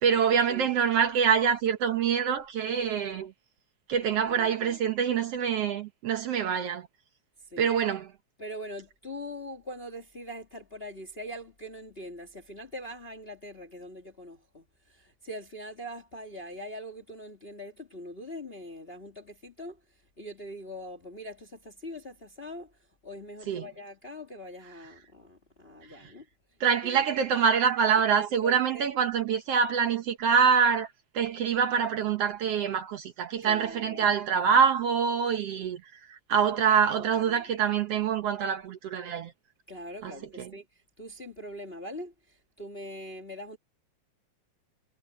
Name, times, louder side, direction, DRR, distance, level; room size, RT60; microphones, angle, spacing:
voice 1, 0.0-3.3 3.9-6.9 7.6-8.1 23.5-23.7 26.6-30.9 31.1-35.8 36.1-39.3 40.0-40.5, right 7 dB, 65° right, 1.8 m, -25 dB
voice 2, 4.2-4.8 7.5-7.7 8.4-26.2 26.8-27.0 28.1-28.9 33.4-34.1 36.9-37.4 39.7-43.6, equal, 25° left, 1.4 m, -42 dB
omnidirectional pair, 3.4 m